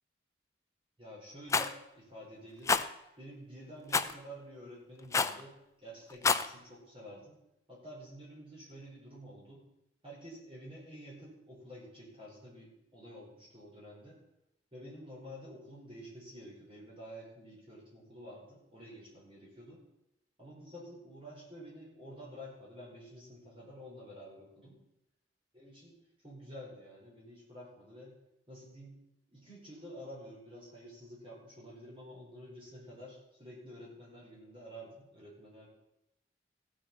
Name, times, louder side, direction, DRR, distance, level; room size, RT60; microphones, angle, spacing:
voice 1, 1.0-2.9 3.2-5.5 5.8-7.4 7.7-9.6 10.0-14.2 14.7-19.8 20.4-24.8 25.5-26.0 26.2-28.1 28.5-29.0 29.3-35.7, equal, 30° right, -5 dB, 5.4 m, -50 dB
Rattle, 1.5-1.7 2.7-2.8 3.9-4.1 5.1-5.4 6.1-6.5, left 4 dB, 15° left, 0.4 m, -27 dB
15.5 x 7.7 x 5.7 m, 0.86 s
head